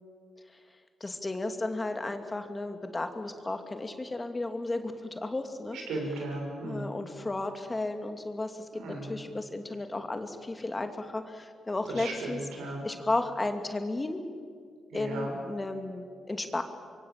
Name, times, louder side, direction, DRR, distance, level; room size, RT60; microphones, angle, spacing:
voice 1, 1.0-5.8 6.6-12.5 12.8-14.2 14.9-16.6, left 2 dB, 25° left, 6 dB, 2.6 m, -34 dB
voice 2, 5.9-6.9 8.8-9.1 12.0-12.8 14.9-15.3, right 2 dB, 90° right, 1 dB, 6.6 m, -35 dB
25.5 x 23.5 x 7.7 m, 2.1 s
cardioid pair, 65°, 0 cm